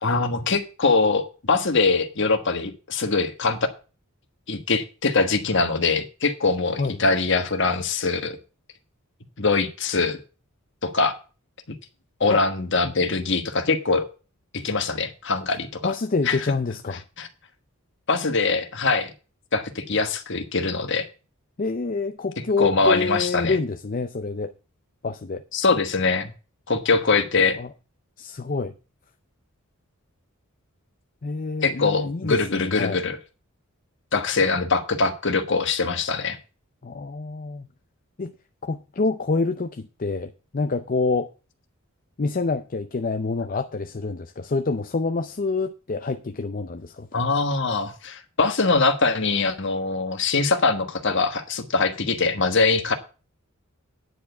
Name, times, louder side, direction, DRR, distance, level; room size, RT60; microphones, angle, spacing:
voice 1, 0.0-3.7 4.5-8.4 9.4-10.2 10.8-11.1 12.2-14.0 14.5-15.9 16.3-16.4 17.2-17.3 18.1-19.1 19.5-21.1 22.6-23.6 25.5-26.3 26.7-27.6 31.6-33.2 34.1-36.4 47.1-52.9, left 4 dB, 55° left, 1.4 m, -23 dB
voice 2, 15.8-17.0 21.6-24.5 25.0-25.4 27.6-27.7 28.2-28.7 31.2-33.0 36.8-37.7 38.2-38.3 38.7-41.3 42.2-47.1, left 3 dB, 40° left, 0.5 m, -27 dB
9.9 x 4.7 x 7.9 m
head